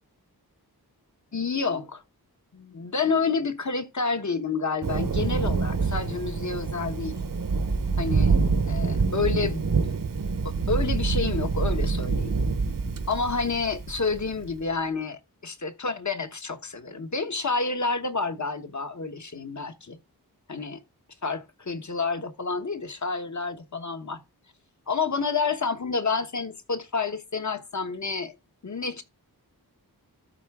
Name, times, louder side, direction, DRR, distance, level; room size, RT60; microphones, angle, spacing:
voice 1, 1.3-2.0 2.5-7.2 8.0-8.4 8.7-9.7 10.4-12.3 13.1-20.0 20.5-20.8 21.2-24.2 24.9-28.3 28.6-29.0, left 4 dB, 50° left, 1.2 m, -29 dB
Thunder, 4.8-14.5, right 4 dB, 55° right, 1.0 m, -26 dB
13.0 x 4.3 x 3.6 m
wide cardioid pair, 80°, 39 cm